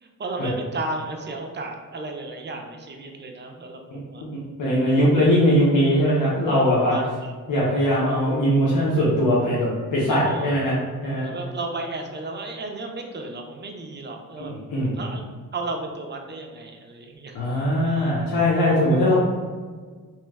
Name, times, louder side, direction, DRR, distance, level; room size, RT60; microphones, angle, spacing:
voice 1, 0.0-4.2 6.9-7.3 10.1-10.5 11.2-14.5 14.9-15.2 15.5-17.4 17.8-18.0, right 2 dB, 35° right, 2 dB, 0.4 m, -34 dB
voice 2, 3.9-7.0 7.5-11.3 14.5-15.0 17.3-19.1, equal, 90° left, -7 dB, 0.7 m, -21 dB
2.9 x 2.2 x 3.4 m, 1.5 s
wide cardioid pair, 110°, 32 cm